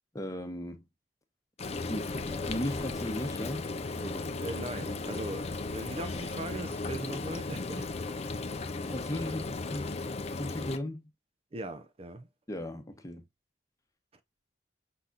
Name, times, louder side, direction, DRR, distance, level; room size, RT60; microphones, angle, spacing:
voice 1, 0.1-0.9 1.9-3.7 3.9-4.3 8.5-10.0 10.4-11.1 12.5-13.2, left 1 dB, 20° left, 1.0 m, -37 dB
Frying (food), 1.6-10.8, left 3 dB, 35° left, 0.5 m, -36 dB
voice 2, 4.4-7.9 11.5-12.3, right 2 dB, 35° right, 0.5 m, -39 dB
5.7 x 4.0 x 2.3 m
head